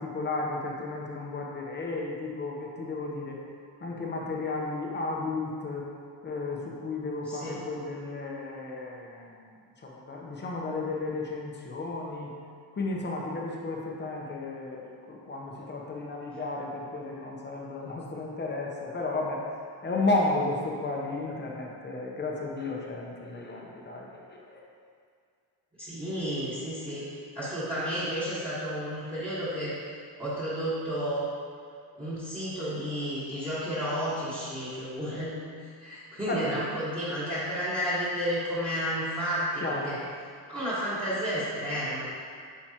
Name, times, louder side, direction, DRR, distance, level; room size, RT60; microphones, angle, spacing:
voice 1, 0.0-3.4 3.8-5.9 6.2-9.5 9.8-12.3 12.7-19.4 19.8-24.6 36.2-36.6 39.6-40.0, left 2 dB, 25° left, -2 dB, 0.9 m, -33 dB
voice 2, 7.2-7.6 25.8-27.1 27.3-29.7 30.2-31.3 32.0-35.4 35.8-40.0 40.5-42.0, equal, 10° right, -13 dB, 1.5 m, -31 dB
9.1 x 6.2 x 2.9 m, 2.1 s
cardioid pair, 170°, 45 cm